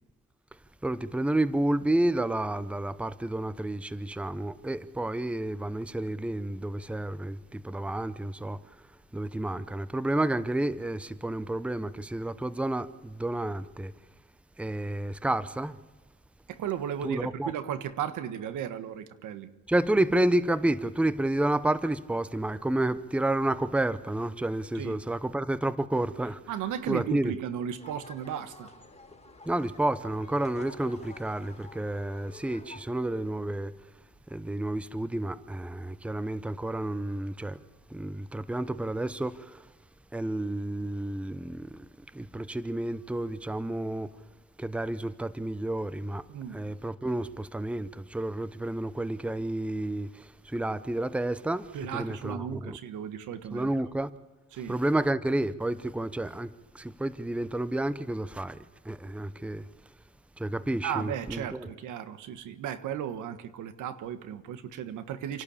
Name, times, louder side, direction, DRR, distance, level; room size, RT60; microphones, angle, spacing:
voice 1, 0.8-8.8 9.1-13.9 14.6-15.8 17.0-17.5 19.7-26.4 26.9-27.3 29.5-33.7 34.3-37.6 37.9-39.7 40.1-44.1 44.6-46.3 46.5-52.8 53.5-54.1 54.7-58.6 58.8-59.7 60.4-61.7, right 1 dB, 5° right, 0.8 m, -30 dB
voice 2, 16.5-19.5 24.7-25.0 26.5-28.7 46.3-46.6 51.7-53.7 54.5-54.8 60.8-65.4, right 9 dB, 85° right, 1.4 m, -35 dB
sound 1, 27.8-32.8, left 2 dB, 20° left, 5.0 m, -50 dB
28.5 x 12.0 x 8.6 m
cardioid pair, 90°, 30 cm